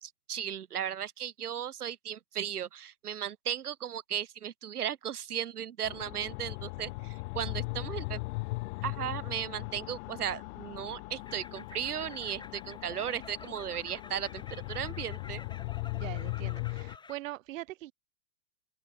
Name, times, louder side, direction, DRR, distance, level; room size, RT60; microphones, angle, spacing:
voice 1, 0.0-8.2 8.8-15.4, right 9 dB, 85° right, 2.5 m, -36 dB
sound 1, 5.8-17.0, left 24 dB, 50° left, 3.6 m, -39 dB
sound 2, 11.2-17.1, left 4 dB, 10° left, 5.1 m, -50 dB
voice 2, 15.9-17.9, right 16 dB, 60° right, 1.1 m, -42 dB
open air
hypercardioid pair, 130°, 44 cm